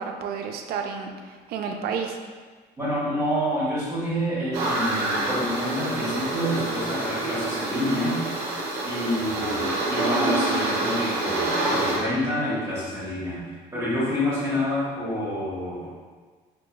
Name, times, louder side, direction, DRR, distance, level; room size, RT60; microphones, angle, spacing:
voice 1, 0.0-2.2, right 6 dB, 65° right, 4 dB, 0.4 m, -31 dB
voice 2, 2.8-8.2 8.8-15.8, equal, 20° right, -10 dB, 1.3 m, -28 dB
sound 1, 4.5-12.0, right 2 dB, 85° right, 0.8 m, -27 dB
4.6 x 2.7 x 2.2 m, 1.5 s
cardioid pair, 110°, 17 cm